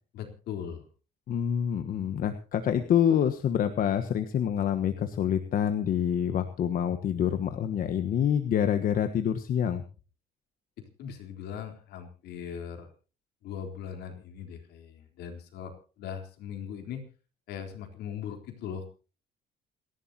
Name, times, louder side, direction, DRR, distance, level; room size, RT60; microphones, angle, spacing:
voice 1, 0.1-0.9 10.8-12.9 13.4-17.0 17.5-18.9, left 8 dB, 75° left, 4 dB, 3.7 m, -39 dB
voice 2, 1.3-9.8, left 9 dB, 55° left, 8 dB, 1.2 m, -27 dB
28.0 x 11.5 x 2.9 m, 0.35 s
cardioid pair, 110°, 17 cm